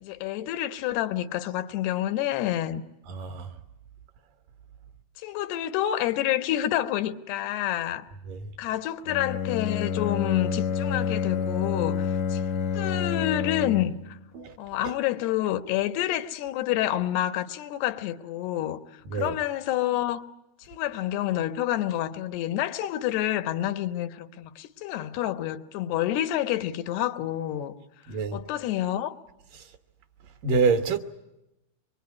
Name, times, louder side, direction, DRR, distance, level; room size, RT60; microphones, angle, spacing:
voice 1, 0.0-2.8 5.2-8.0 8.6-12.0 12.3-12.4 12.7-14.0 14.6-18.8 19.1-20.2 20.7-27.7 28.3-29.2, left 13 dB, 90° left, 3.1 m, -28 dB
voice 2, 3.1-3.5 8.3-8.4 14.3-14.5 19.1-19.4 28.1-28.4 30.4-31.0, right 4 dB, 65° right, 2.9 m, -26 dB
Bowed string instrument, 9.0-14.1, left 7 dB, 70° left, 1.3 m, -28 dB
24.5 x 23.5 x 9.6 m
omnidirectional pair, 4.5 m